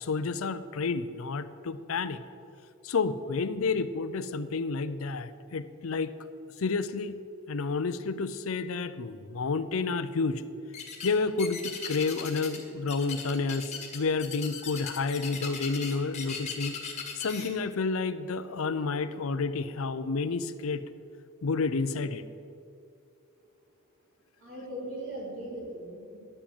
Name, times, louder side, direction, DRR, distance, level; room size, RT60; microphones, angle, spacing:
voice 1, 0.0-2.2 2.8-6.1 6.6-7.2 7.5-10.4 11.0-16.8 17.1-20.8 21.4-22.2, left 4 dB, 75° left, 13 dB, 0.6 m, -30 dB
sound 1, 10.7-11.1 11.4-12.6 12.9-17.5, left 6 dB, 35° left, 1.5 m, -38 dB
voice 2, 24.4-26.2, right 1 dB, 65° right, -6 dB, 3.3 m, -39 dB
11.0 x 6.1 x 8.3 m, 2.5 s
head